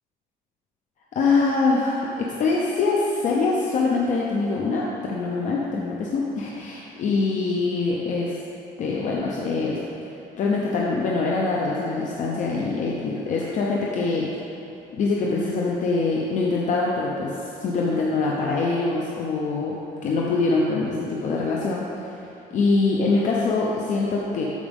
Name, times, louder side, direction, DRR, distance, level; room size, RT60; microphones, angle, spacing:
voice 1, 1.1-8.4 8.8-9.8 10.4-14.3 14.9-22.1 22.5-24.4, left 3 dB, 50° left, -3 dB, 0.8 m, -24 dB
12.5 x 4.9 x 3.6 m, 3.0 s
cardioid pair, 150°, 16 cm